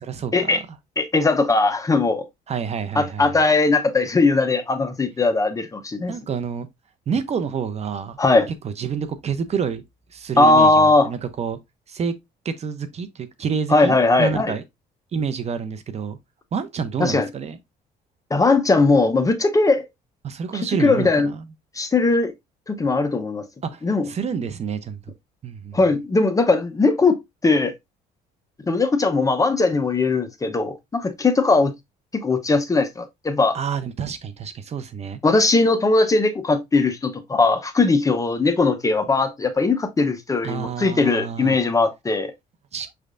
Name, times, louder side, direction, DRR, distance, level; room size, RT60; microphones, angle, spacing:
voice 1, 0.1-0.6 2.5-3.4 6.1-6.7 7.1-8.2 8.6-9.8 10.1-11.6 11.9-12.1 12.4-14.6 15.1-16.2 16.5-17.6 20.2-21.5 23.6-25.0 25.4-25.8 33.5-35.2 40.4-41.6 42.7-42.9, right 6 dB, 40° right, 0.7 m, -28 dB
voice 2, 1.0-2.2 3.0-6.1 8.2-8.5 10.4-11.1 13.7-14.5 17.0-17.3 18.3-19.8 20.8-21.3 21.8-22.3 22.7-23.4 23.8-24.1 25.7-27.7 28.7-31.7 32.2-33.6 35.2-42.3, left 3 dB, 20° left, 0.7 m, -19 dB
6.4 x 3.3 x 2.5 m
cardioid pair, 110°, 17 cm